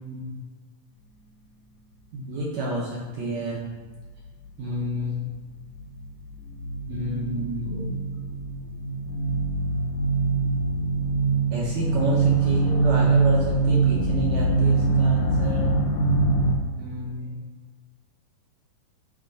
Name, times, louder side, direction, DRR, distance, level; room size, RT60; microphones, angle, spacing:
voice 1, 0.0-0.4 2.1-3.6 4.6-5.3 6.9-8.0 11.5-15.7 16.8-17.5, equal, 70° right, -4 dB, 1.8 m, -29 dB
sound 1, 4.0-4.1 4.5-5.4 5.6-16.5, right 3 dB, 80° left, 2.4 m, -23 dB
8.5 x 3.4 x 3.9 m, 1.4 s
omnidirectional pair, 3.9 m